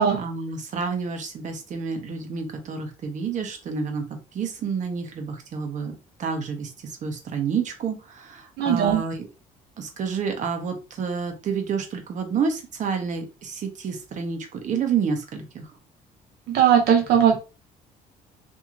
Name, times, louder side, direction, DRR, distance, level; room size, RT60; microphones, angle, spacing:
voice 1, 0.2-9.3 9.8-15.7, right 6 dB, 45° right, 0.8 m, -29 dB
voice 2, 8.6-9.0 16.5-17.4, right 8 dB, 75° right, 0.5 m, -18 dB
2.8 x 2.7 x 2.4 m
cardioid pair, 110°, 17 cm